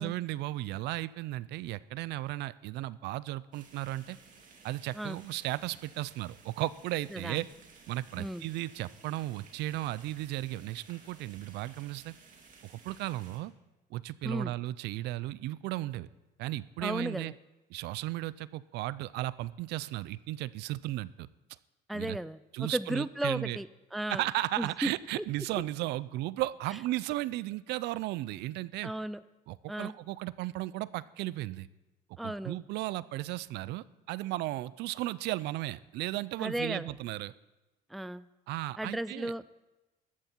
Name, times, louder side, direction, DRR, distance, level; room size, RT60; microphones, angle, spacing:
voice 1, 0.0-4.2 4.6-7.5 7.9-12.1 12.6-13.5 13.9-16.1 16.4-17.3 17.7-21.3 21.9-22.2 22.5-23.6 24.1-28.9 29.5-31.7 32.2-37.3 38.5-39.3, right 16 dB, 80° right, 19 dB, 0.4 m, -35 dB
sound 1, 3.5-13.4, right 4 dB, 50° right, 2.5 m, -57 dB
voice 2, 16.8-17.3 21.9-24.2 24.6-24.9 28.8-29.2 29.7-29.9 32.2-32.6 36.4-37.0 37.9-38.3 38.8-39.4, right 1 dB, ahead, 16 dB, 0.3 m, -35 dB
14.0 x 11.5 x 4.4 m, 1.0 s
cardioid pair, 110°, 17 cm